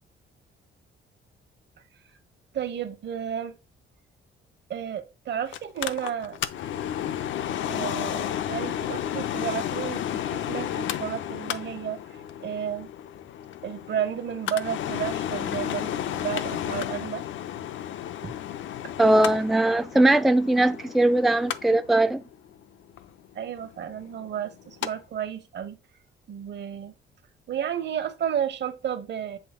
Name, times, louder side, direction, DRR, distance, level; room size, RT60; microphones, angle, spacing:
voice 1, 2.5-3.6 4.7-6.4 7.7-12.9 13.6-17.2 18.2-18.4 18.8-18.9 23.3-25.8 26.3-27.0 27.5-29.4, right 9 dB, 60° right, 1.2 m, -32 dB
Mechanical fan, 5.5-24.9 25.2-25.3, left 10 dB, 75° left, 0.6 m, -32 dB
voice 2, 19.0-22.2, right 1 dB, ahead, 0.4 m, -20 dB
7.8 x 3.3 x 3.7 m
cardioid pair, 90°, 20 cm